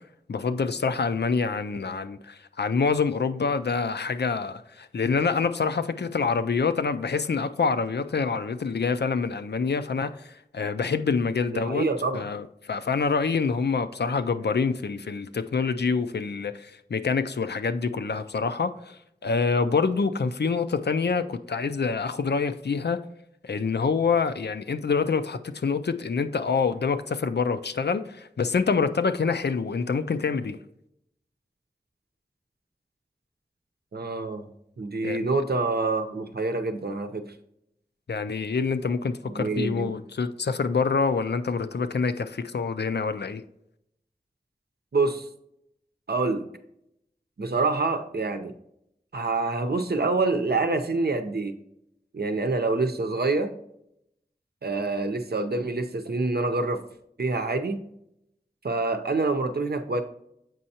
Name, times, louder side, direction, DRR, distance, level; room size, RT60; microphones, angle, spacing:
voice 1, 0.3-11.9 12.1-19.0 19.2-23.0 23.4-30.6 35.0-35.2 38.1-43.4, left 5 dB, 80° left, 0.4 m, -26 dB
voice 2, 11.5-12.2 33.9-34.5 34.8-37.2 39.3-39.9 44.9-45.3 46.1-46.5 47.4-48.5 49.1-51.6 52.1-53.5 54.6-56.8 57.2-57.8 58.6-60.0, right 3 dB, 70° right, 0.7 m, -26 dB
7.6 x 5.4 x 2.8 m
wide cardioid pair, 45°, 17 cm